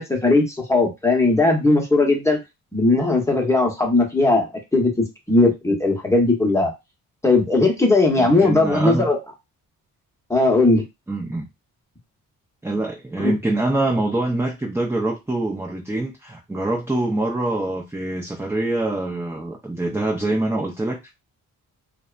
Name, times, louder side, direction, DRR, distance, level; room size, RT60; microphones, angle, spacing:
voice 1, 0.0-2.4 2.7-6.7 7.2-9.2 10.3-10.8 13.2-13.3, left 2 dB, 10° left, 1 dB, 1.0 m, -18 dB
voice 2, 8.2-9.1 11.1-11.5 12.6-21.1, right 2 dB, 5° right, -1 dB, 0.5 m, -25 dB
2.7 x 2.2 x 2.4 m, 0.22 s
cardioid pair, 80°, 35 cm